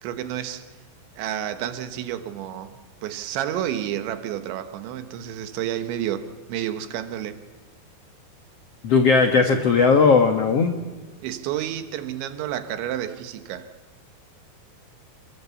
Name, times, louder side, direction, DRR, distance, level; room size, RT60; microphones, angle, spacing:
voice 1, 0.0-0.7 1.2-7.4 11.2-13.7, right 11 dB, 90° right, 3.6 m, -30 dB
voice 2, 8.8-10.7, left 4 dB, 85° left, 1.3 m, -17 dB
28.0 x 22.5 x 7.0 m
omnidirectional pair, 5.1 m